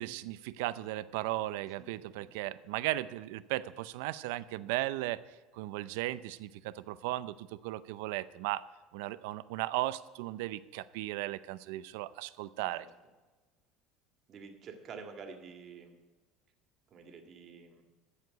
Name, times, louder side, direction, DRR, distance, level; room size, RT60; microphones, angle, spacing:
voice 1, 0.0-5.2 5.5-8.7 8.9-12.9, right 16 dB, 85° right, 16 dB, 0.5 m, -36 dB
voice 2, 14.3-16.0 16.9-17.8, right 5 dB, 40° right, 5 dB, 1.9 m, -48 dB
14.0 x 5.0 x 8.3 m, 1.2 s
cardioid pair, 130°, 0 cm